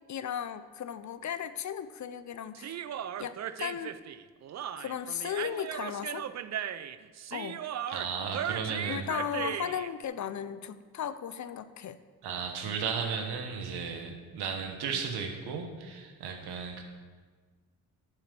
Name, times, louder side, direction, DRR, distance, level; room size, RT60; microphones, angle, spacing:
voice 1, 0.1-2.8 3.2-4.0 4.8-6.3 7.3-7.6 8.9-12.0, left 9 dB, 45° left, 13 dB, 0.6 m, -36 dB
Human voice, 2.5-9.9, right 10 dB, 45° right, 0.5 m, -37 dB
voice 2, 7.9-9.1 12.2-16.8, right 6 dB, 75° right, 4 dB, 1.4 m, -35 dB
10.5 x 4.9 x 6.8 m, 1.5 s
supercardioid pair, 55°, 39 cm